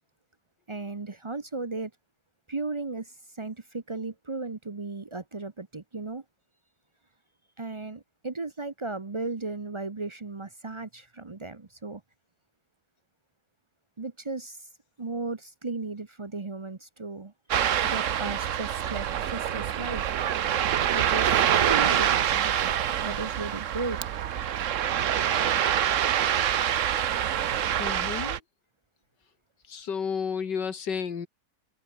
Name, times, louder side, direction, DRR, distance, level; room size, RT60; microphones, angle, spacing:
voice 1, 0.7-1.9 2.5-6.2 7.6-12.0 14.0-14.7 15.0-17.3 17.8-20.0 20.9-24.0, right 3 dB, 30° right, 0.5 m, -36 dB
Ocean, 17.5-28.4, right 10 dB, 55° right, 1.0 m, -26 dB
voice 2, 27.8-28.4 29.7-31.3, left 6 dB, 90° left, 2.6 m, -31 dB
omnidirectional pair, 1.8 m